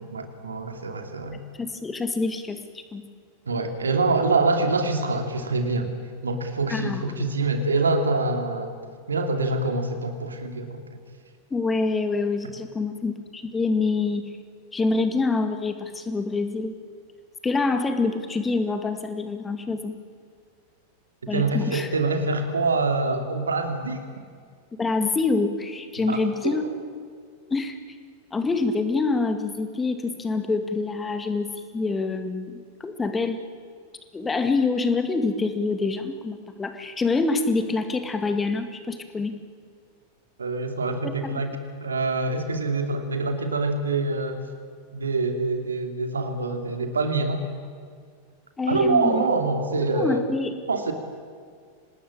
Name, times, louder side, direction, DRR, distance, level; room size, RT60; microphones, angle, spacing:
voice 1, 0.1-1.4 3.5-5.9 6.2-8.7 9.1-10.8 21.3-24.0 26.1-26.6 40.4-41.5 41.8-44.4 44.9-47.4 48.7-50.2 50.7-50.9, right 3 dB, 75° right, 6 dB, 2.7 m, -25 dB
voice 2, 1.6-2.6 2.9-3.0 6.7-7.3 11.5-14.3 14.7-16.7 17.4-20.0 21.3-21.9 24.8-26.7 27.5-27.8 28.3-33.4 34.1-39.3 41.0-41.4 48.6-49.2 49.7-50.6, left 3 dB, 15° left, 8 dB, 2.1 m, -26 dB
26.0 x 19.5 x 8.8 m, 2.1 s
figure-of-eight pair, 90°, 0 cm